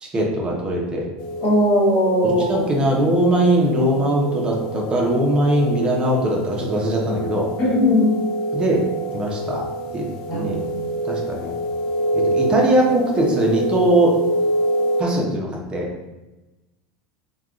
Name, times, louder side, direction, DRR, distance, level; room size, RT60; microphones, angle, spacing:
voice 1, 0.0-1.0 2.2-7.5 8.5-8.8 9.1-9.6 9.9-10.1 10.3-10.7 11.0-11.5 12.1-14.2 15.0-15.9, right 1 dB, 25° right, -1 dB, 0.7 m, -20 dB
sound 1, 1.2-15.0, right 1 dB, 70° left, 0.4 m, -26 dB
voice 2, 1.4-2.6 7.6-8.1 10.3-10.6, left 1 dB, 45° left, -5 dB, 1.4 m, -18 dB
3.4 x 2.3 x 2.3 m, 1.1 s
supercardioid pair, 120°, 4 cm